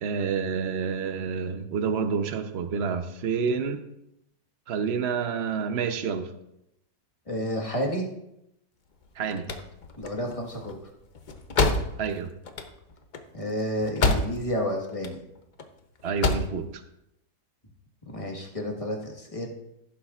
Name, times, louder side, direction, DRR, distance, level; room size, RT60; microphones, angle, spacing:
voice 1, 0.0-3.8 4.7-6.3 9.2-9.5 12.0-12.3 16.0-16.8, right 6 dB, 55° right, 8 dB, 0.7 m, -28 dB
voice 2, 7.3-8.1 10.0-10.8 13.3-15.2 18.0-19.5, equal, 20° left, 1 dB, 1.3 m, -30 dB
sound 1, 9.0-14.6 14.9-15.7 16.0-16.6, left 3 dB, 90° left, 0.4 m, -28 dB
15.5 x 7.5 x 2.4 m, 0.81 s
omnidirectional pair, 1.9 m